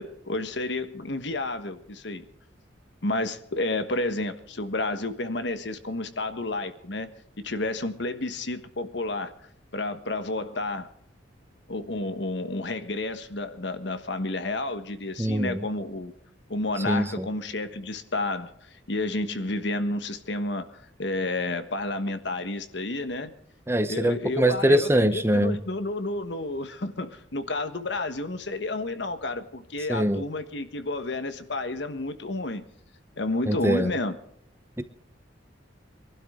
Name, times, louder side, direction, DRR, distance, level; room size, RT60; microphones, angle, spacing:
voice 1, 0.0-2.3 3.0-7.1 7.4-9.3 9.7-10.9 11.7-16.1 16.5-23.3 23.9-32.6 33.2-34.2, left 2 dB, 65° left, 10 dB, 1.3 m, -31 dB
voice 2, 15.2-15.6 16.9-17.3 23.7-25.6 29.9-30.2 33.5-33.9 34.8-34.9, right 1 dB, 15° right, 11 dB, 0.8 m, -23 dB
23.5 x 12.0 x 3.7 m, 0.68 s
head